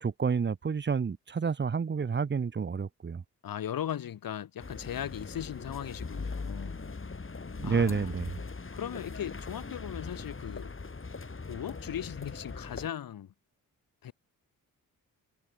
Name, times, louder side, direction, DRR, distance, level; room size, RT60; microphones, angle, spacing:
voice 1, 0.0-3.2 7.6-8.4, right 5 dB, 30° right, 0.9 m, -29 dB
voice 2, 3.4-6.9 7.6-8.2 8.7-10.7 11.5-13.3 14.0-14.1, left 10 dB, 65° left, 1.6 m, -38 dB
sound 1, 4.6-12.9, left 4 dB, 35° left, 5.0 m, -40 dB
supercardioid pair, 60°, 37 cm